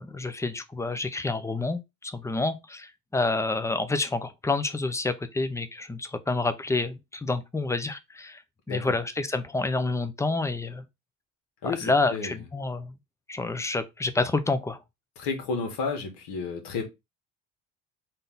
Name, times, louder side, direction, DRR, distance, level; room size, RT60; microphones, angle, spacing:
voice 1, 0.0-8.4 8.7-10.8 11.6-12.9 13.3-14.8, left 3 dB, 5° left, 0.5 m, -28 dB
voice 2, 11.6-12.4 15.2-16.8, left 4 dB, 65° left, 1.8 m, -32 dB
3.8 x 2.8 x 3.9 m
supercardioid pair, 80°, 43 cm